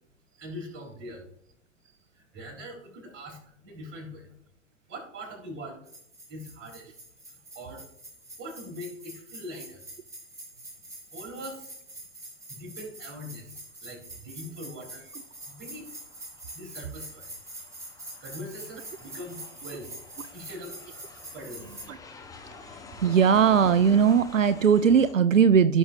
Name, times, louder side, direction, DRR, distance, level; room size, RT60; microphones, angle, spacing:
voice 1, 0.4-1.2 2.1-4.3 4.9-5.8 6.3-6.9 7.3-7.9 8.4-9.8 11.1-11.7 12.5-15.2 15.5-16.0 16.5-17.4 18.2-20.0 20.3-20.8 21.3-21.7, equal, 30° right, -1 dB, 4.0 m, -42 dB
sound 1, 5.9-21.9, right 1 dB, 10° right, 2.2 m, -45 dB
Aircraft, 14.9-25.1, left 4 dB, 10° left, 1.0 m, -48 dB
voice 2, 23.0-25.8, right 7 dB, 85° right, 12 dB, 0.5 m, -19 dB
15.5 x 6.3 x 2.7 m, 0.72 s
figure-of-eight pair, 105°, 38 cm